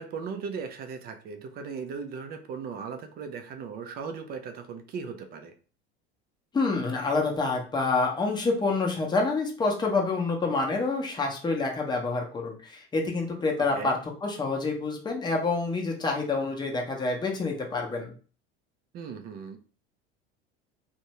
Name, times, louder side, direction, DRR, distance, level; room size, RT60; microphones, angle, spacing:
voice 1, 0.0-5.5 13.7-14.0 18.9-19.6, right 5 dB, 30° right, 7 dB, 0.4 m, -37 dB
voice 2, 6.5-18.1, left 3 dB, 15° left, 0 dB, 0.7 m, -27 dB
2.6 x 2.1 x 2.9 m, 0.38 s
figure-of-eight pair, 75°, 33 cm